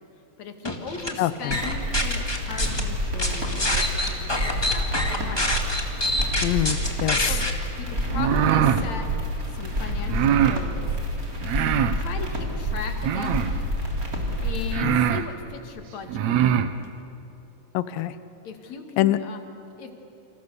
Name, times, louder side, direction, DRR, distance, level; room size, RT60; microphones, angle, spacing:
voice 1, 0.4-5.5 7.3-7.5 7.8-9.1 9.5-10.9 11.9-13.5 14.4-16.2 18.4-19.4 19.8-19.9, left 5 dB, 55° left, 5 dB, 3.1 m, -37 dB
sound 1, 0.6-1.1 1.5-2.8 3.2-7.5, left 1 dB, 10° left, 1.5 m, -26 dB
voice 2, 1.2-1.6 6.4-7.3 14.8-15.0 17.7-18.1 19.0-19.2, left 14 dB, 90° left, 13 dB, 2.5 m, -24 dB
sound 2, 1.5-14.8, equal, 25° right, 3.7 m, -28 dB
sound 3, 8.1-8.8 10.1-10.6 11.4-12.0 13.0-13.6 14.3-14.4 14.7-15.3 16.1-16.7, right 10 dB, 65° right, 1.9 m, -22 dB
29.0 x 27.0 x 6.9 m, 2.9 s
omnidirectional pair, 3.9 m